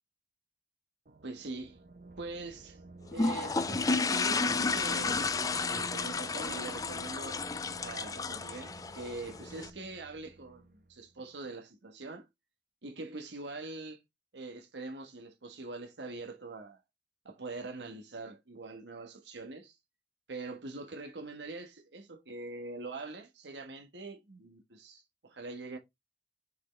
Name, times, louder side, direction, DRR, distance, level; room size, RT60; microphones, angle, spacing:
sound 1, 1.1-11.3, right 2 dB, 50° right, 0.6 m, -51 dB
voice 1, 1.2-1.8 2.2-2.8 3.1-5.3 5.7-7.4 7.8-12.3 12.8-14.0 14.3-16.8 17.2-19.8 20.3-25.8, right 3 dB, 85° right, 1.4 m, -43 dB
sound 2, 3.1-9.7, left 4 dB, 20° left, 0.4 m, -32 dB
6.3 x 4.8 x 3.2 m
head